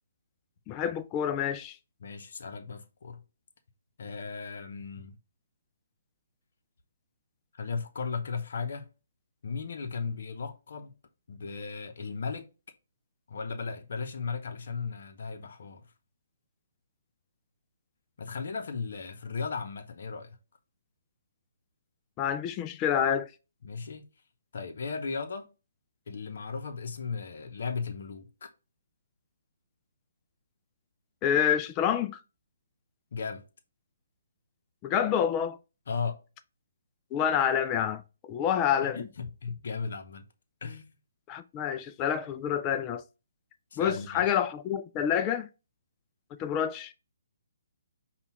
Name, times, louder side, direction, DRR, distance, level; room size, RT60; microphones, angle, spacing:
voice 1, 0.7-1.8 22.2-23.3 31.2-32.2 34.8-35.6 37.1-39.1 41.3-43.0 43.8-45.5 46.4-46.9, left 9 dB, 25° left, 0.3 m, -28 dB
voice 2, 2.0-3.2 4.0-5.1 7.5-8.9 9.4-10.9 11.3-12.5 13.3-15.8 18.2-20.4 23.6-24.1 24.5-25.5 26.1-28.5 33.1-33.4 35.9-36.2 38.8-40.2 40.6-40.9 43.7-44.3, left 5 dB, 60° left, 0.7 m, -36 dB
5.4 x 2.3 x 4.1 m
figure-of-eight pair, 145°, 0 cm